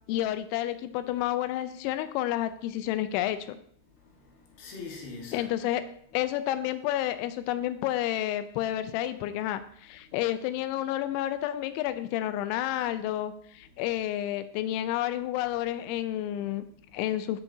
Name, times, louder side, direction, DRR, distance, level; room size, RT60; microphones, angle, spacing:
voice 1, 0.1-3.6 5.3-5.8 6.1-16.6 16.9-17.4, left 13 dB, 85° left, 2.7 m, -30 dB
voice 2, 3.9-5.7 10.0-10.2 16.6-17.0, left 4 dB, 65° left, 2.7 m, -45 dB
13.0 x 7.1 x 2.7 m
omnidirectional pair, 5.8 m